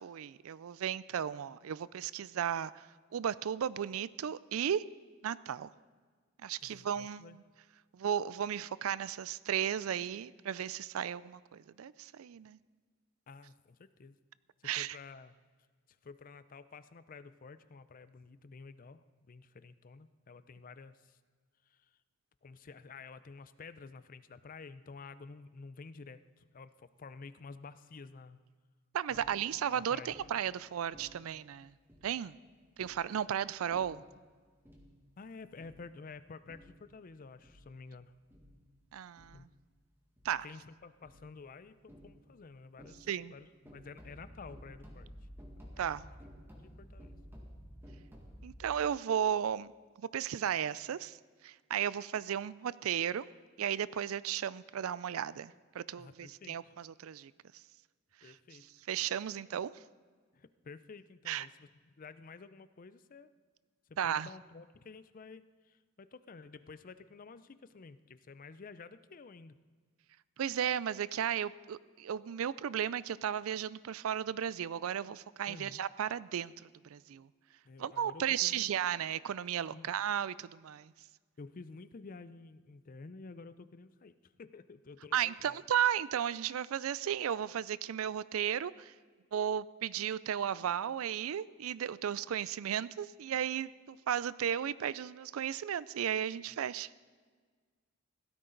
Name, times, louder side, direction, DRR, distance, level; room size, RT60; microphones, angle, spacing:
voice 1, 0.0-2.9 3.1-4.8 5.2-5.7 6.4-7.4 7.9-12.6 14.6-15.0 28.9-31.7 32.0-32.3 32.8-34.0 38.9-39.5 40.2-40.5 43.1-43.3 45.8-46.1 48.4-49.7 50.0-51.2 51.4-53.3 53.6-57.3 58.9-59.7 61.3-61.5 64.0-64.3 70.4-76.5 76.9-77.3 77.8-80.9 85.1-88.9 89.3-96.9, right 9 dB, 80° right, 19 dB, 0.4 m, -34 dB
voice 2, 6.6-7.4 13.3-14.2 14.6-15.4 16.0-21.2 21.7-21.8 22.4-28.4 29.1-29.4 29.7-30.1 35.2-38.1 39.3-39.4 40.4-45.1 45.7-45.9 46.6-47.1 56.0-56.8 58.2-58.7 60.3-63.3 63.9-69.6 75.5-75.8 77.6-78.7 79.7-79.9 81.4-85.6, left 4 dB, 40° left, 14 dB, 0.5 m, -51 dB
sound 1, 29.1-29.6 30.1-30.5 30.9-31.4 31.9-32.2 32.8-33.1 33.7-34.1 34.6-35.1 35.6-36.0 36.5-36.8 37.4-37.8 38.3-38.7 39.2-39.6 40.2-40.5 41.0-41.3 41.9-42.4 42.8-43.3 43.7-48.6, equal, 10° right, 1.9 m, -53 dB
16.5 x 13.5 x 3.9 m, 1.5 s
head